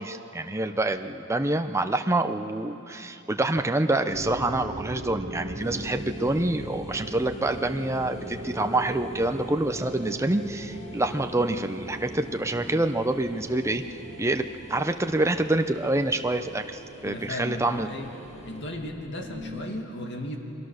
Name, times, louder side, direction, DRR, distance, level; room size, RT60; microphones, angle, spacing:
voice 1, 0.0-13.8 14.2-16.7 17.0-17.9, right 2 dB, 15° right, 7 dB, 0.6 m, -26 dB
sound 1, 4.1-19.6, right 1 dB, 40° right, 1.7 m, -40 dB
sound 2, 5.6-18.6, right 1 dB, 30° left, 2.0 m, -47 dB
voice 2, 17.0-18.1 18.4-20.4, left 1 dB, 55° left, 2 dB, 2.3 m, -35 dB
30.0 x 23.0 x 6.5 m, 3.0 s
head